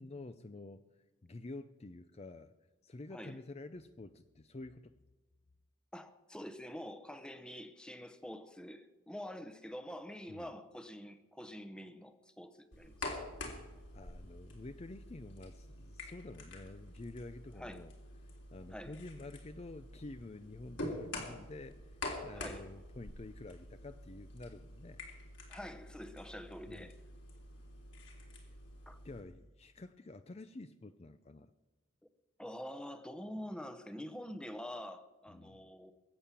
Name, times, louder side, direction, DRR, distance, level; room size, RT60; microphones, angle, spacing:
voice 1, 0.0-2.5 2.8-4.9 10.3-10.5 13.9-17.9 18.5-25.0 26.7-26.9 29.0-31.5 35.3-35.7, left 2 dB, 30° left, 10 dB, 0.5 m, -49 dB
voice 2, 3.1-3.4 5.9-13.2 17.5-17.9 18.7-19.0 22.3-22.7 25.5-27.0 28.9-29.0 32.4-35.9, equal, 5° left, 10 dB, 0.8 m, -46 dB
sound 1, 12.7-29.2, left 2 dB, 60° left, 3.5 m, -47 dB
22.0 x 8.5 x 7.4 m, 1.2 s
head